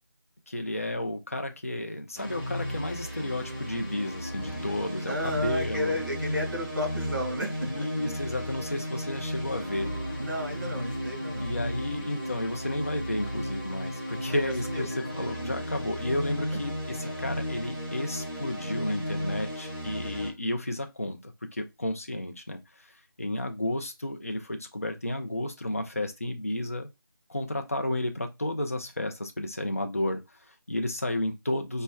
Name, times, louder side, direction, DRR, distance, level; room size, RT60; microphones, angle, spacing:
voice 1, 0.5-6.0 7.6-9.9 11.4-26.9 27.3-31.8, left 1 dB, 35° left, 0.4 m, -32 dB
sound 1, 2.1-20.3, equal, ahead, 0.9 m, -34 dB
voice 2, 5.1-7.9 10.2-11.5 14.3-14.9, equal, 55° right, 1.7 m, -32 dB
4.2 x 2.2 x 2.2 m
figure-of-eight pair, 180°, 12 cm